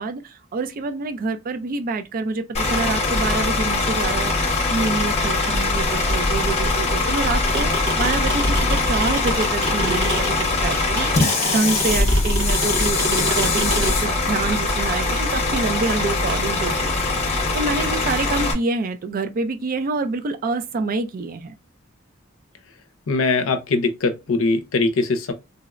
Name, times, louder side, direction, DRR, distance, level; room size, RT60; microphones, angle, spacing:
voice 1, 0.0-17.0 17.5-21.6, right 3 dB, 45° right, 0.4 m, -27 dB
Bus / Idling, 2.5-18.5, left 3 dB, 30° left, 0.8 m, -22 dB
sound 1, 7.2-13.9, right 1 dB, 65° right, 1.0 m, -26 dB
sound 2, 10.6-17.0, right 4 dB, 85° right, 0.6 m, -38 dB
voice 2, 23.1-25.3, left 3 dB, 75° left, 0.6 m, -21 dB
3.8 x 2.0 x 2.4 m
head